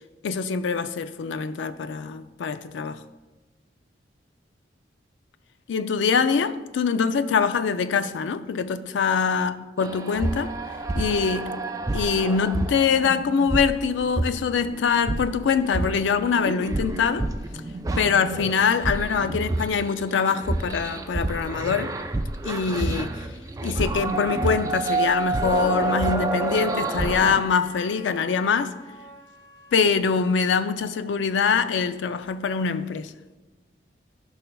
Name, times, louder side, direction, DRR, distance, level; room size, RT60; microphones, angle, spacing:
voice 1, 0.2-3.0 5.7-10.6 10.9-11.6 11.9-17.3 18.0-21.9 22.4-23.3 23.6-28.8 29.7-33.1, left 6 dB, 85° left, 0.4 m, -24 dB
sound 1, 9.8-27.4, right 2 dB, 20° right, 0.3 m, -29 dB
Wind instrument woodwind instrument, 26.0-29.9, left 1 dB, 20° left, 1.0 m, -45 dB
13.0 x 5.5 x 2.3 m
head